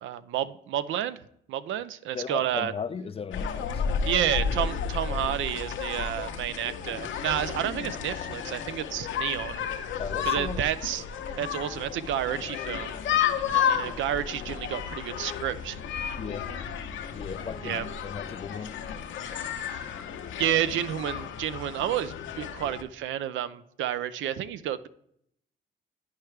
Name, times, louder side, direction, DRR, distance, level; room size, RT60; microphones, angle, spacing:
voice 1, 0.0-1.2 1.5-2.7 4.0-9.6 10.3-11.0 11.4-13.0 13.5-15.8 17.6-17.8 19.3-19.9 20.4-24.9, right 11 dB, 75° right, 0.4 m, -30 dB
voice 2, 2.1-3.8 10.0-10.7 13.8-13.9 16.2-16.5 17.1-18.8, left 6 dB, 30° left, 0.4 m, -36 dB
sound 1, 3.3-22.8, left 7 dB, 75° left, 0.7 m, -32 dB
10.5 x 4.6 x 3.2 m
cardioid pair, 90°, 20 cm